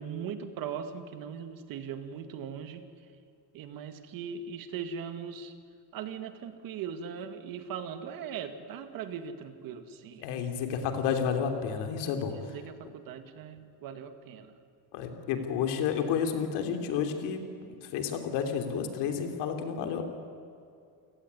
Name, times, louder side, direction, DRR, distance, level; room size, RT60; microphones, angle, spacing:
voice 1, 0.0-2.8 3.5-5.5 5.9-10.3 12.2-14.5, right 7 dB, 55° right, 8 dB, 2.0 m, -39 dB
voice 2, 10.2-12.3 14.9-17.4 17.9-20.0, left 7 dB, 70° left, 5 dB, 3.3 m, -30 dB
28.5 x 17.0 x 9.8 m, 2.4 s
cardioid pair, 160°, 42 cm